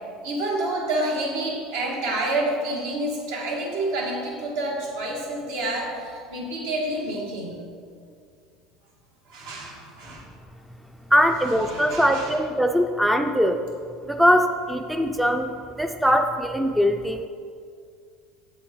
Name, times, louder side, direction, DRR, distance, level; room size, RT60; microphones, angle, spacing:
voice 1, 0.2-7.6 9.3-10.3 11.7-12.3, right 1 dB, 75° right, -2 dB, 2.1 m, -28 dB
voice 2, 11.1-13.6 14.1-15.5 15.8-17.3, equal, ahead, 6 dB, 0.3 m, -21 dB
7.7 x 7.0 x 4.6 m, 2.2 s
cardioid pair, 160°, 0 cm